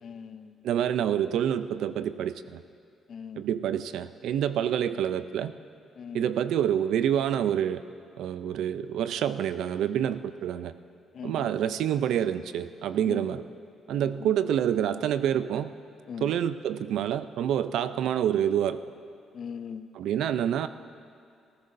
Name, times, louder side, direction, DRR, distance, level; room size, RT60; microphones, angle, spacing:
voice 1, 0.0-0.6 3.1-3.5 6.0-6.2 11.1-11.5 13.1-13.3 14.0-14.3 16.1-16.3 19.3-19.9, left 7 dB, 60° left, 11 dB, 0.6 m, -40 dB
voice 2, 0.6-2.6 3.4-5.5 6.1-7.8 8.2-10.7 11.2-13.4 13.9-15.7 16.2-18.8 19.9-20.7, right 9 dB, 80° right, 13 dB, 0.5 m, -27 dB
19.0 x 15.5 x 2.6 m, 2.5 s
cardioid pair, 90°, 0 cm